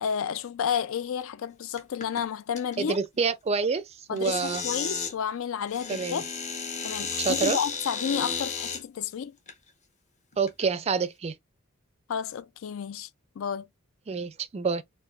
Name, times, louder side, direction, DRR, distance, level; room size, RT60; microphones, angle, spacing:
voice 1, 0.0-3.0 4.1-6.2 6.8-9.4 12.1-13.1 13.4-13.7, left 7 dB, 65° left, 0.4 m, -31 dB
sound 1, 1.8-2.2 2.6-2.9 4.2-5.1 5.7-8.8 9.5-9.6 10.3-10.6, left 5 dB, 35° left, 0.8 m, -33 dB
voice 2, 2.8-4.6 5.9-6.2 7.2-7.6 10.4-11.3 14.1-14.8, right 5 dB, 30° right, 0.4 m, -27 dB
4.7 x 2.5 x 2.3 m
head